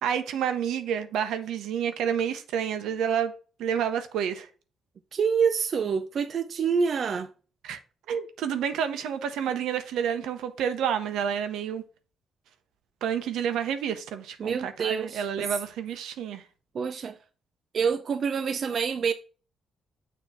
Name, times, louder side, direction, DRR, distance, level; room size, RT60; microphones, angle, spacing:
voice 1, 0.0-3.3 3.6-4.5 7.6-7.8 8.1-11.8 13.0-16.4, right 8 dB, 85° right, 0.8 m, -29 dB
voice 2, 5.1-7.3 14.4-15.5 16.7-17.2 17.7-19.1, right 6 dB, 50° right, 0.4 m, -27 dB
6.8 x 3.0 x 5.7 m
cardioid pair, 90°, 0 cm